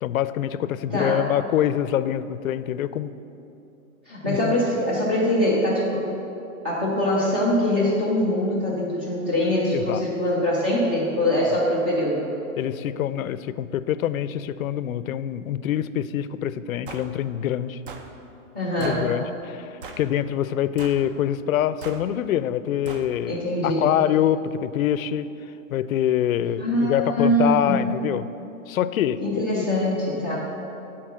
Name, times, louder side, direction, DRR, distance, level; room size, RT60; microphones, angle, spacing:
voice 1, 0.0-3.1 4.3-4.5 9.7-10.0 12.6-17.8 18.8-25.3 25.7-28.3 28.7-29.6, left 11 dB, 75° left, 14 dB, 0.5 m, -25 dB
voice 2, 0.9-1.2 4.1-6.1 6.6-12.3 18.5-19.1 23.3-24.0 26.6-27.8 29.2-30.4, left 1 dB, 10° right, -7 dB, 0.4 m, -23 dB
sound 1, 16.9-17.1 17.9-18.1 18.8-19.0 19.8-20.1 20.8-21.1 21.8-22.0 22.8-23.1, right 5 dB, 40° right, 0.7 m, -39 dB
10.5 x 4.4 x 6.2 m, 2.9 s
hypercardioid pair, 160°, 41 cm